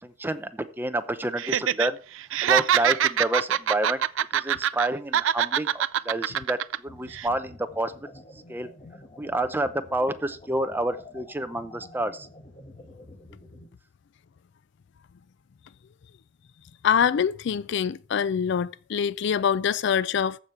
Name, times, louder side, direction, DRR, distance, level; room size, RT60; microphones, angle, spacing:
voice 1, 0.0-2.0 2.4-4.0 4.3-8.7 9.2-12.3, right 1 dB, 10° right, 0.8 m, -29 dB
Laughter, 1.4-1.9 2.2-4.9 5.1-6.8 7.1-7.3, right 10 dB, 75° right, 0.4 m, -24 dB
sound 1, 6.9-13.7, left 1 dB, 30° left, 1.6 m, -48 dB
voice 2, 16.8-20.4, left 7 dB, 65° left, 0.4 m, -24 dB
14.5 x 5.0 x 5.8 m
head